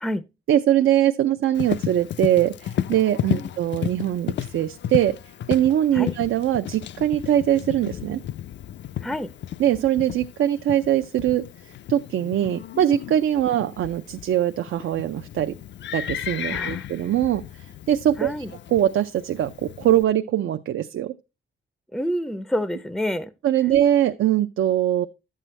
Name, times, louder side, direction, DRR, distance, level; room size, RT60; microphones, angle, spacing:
voice 1, 0.5-5.2 5.5-8.2 9.6-11.5 11.9-15.6 15.9-17.4 17.9-18.3 18.7-21.1 23.4-25.1, right 11 dB, 80° right, 0.5 m, -22 dB
Livestock farm animals working animals, 1.6-20.0, left 11 dB, 65° left, 0.4 m, -33 dB
voice 2, 16.5-16.9 18.2-18.5 21.9-23.3, equal, ahead, 0.4 m, -28 dB
11.0 x 7.6 x 3.2 m
wide cardioid pair, 120°, 21 cm